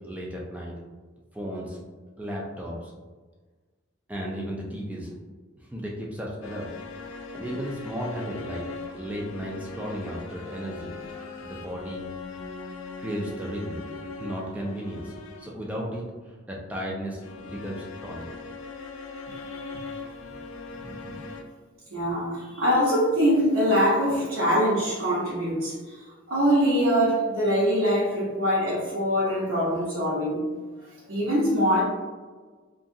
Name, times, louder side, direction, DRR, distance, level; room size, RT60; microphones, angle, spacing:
voice 1, 0.0-0.8 1.3-1.8 2.2-2.9 4.1-5.1 5.6-6.7 7.3-8.7 8.9-10.9 11.4-12.0 13.0-13.8 14.2-18.3, equal, 5° right, -3 dB, 0.3 m, -34 dB
sound 1, 6.4-15.7 17.2-21.4, left 4 dB, 80° left, 0.3 m, -40 dB
voice 2, 19.3-20.0 20.9-21.2 21.9-30.4 31.1-31.8, equal, 85° right, -9 dB, 0.8 m, -24 dB
2.7 x 2.4 x 2.6 m, 1.4 s
head